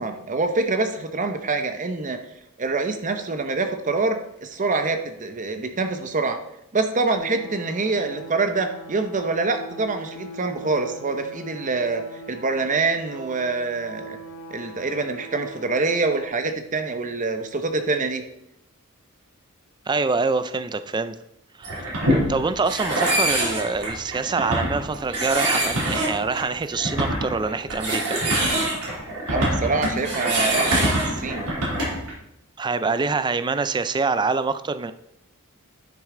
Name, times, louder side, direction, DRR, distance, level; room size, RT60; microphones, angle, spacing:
voice 1, 0.0-2.2 2.6-6.4 6.7-14.2 14.5-18.2 29.3-31.5, right 3 dB, 35° right, 7 dB, 0.7 m, -25 dB
sound 1, 7.1-16.3, right 1 dB, 75° left, 2.4 m, -41 dB
voice 2, 19.9-21.2 21.6-21.8 22.3-28.2 32.6-34.9, right 4 dB, 20° right, 11 dB, 0.4 m, -25 dB
sound 2, 21.6-32.1, right 1 dB, 85° right, 2.9 m, -24 dB
10.5 x 6.4 x 3.8 m, 0.79 s
head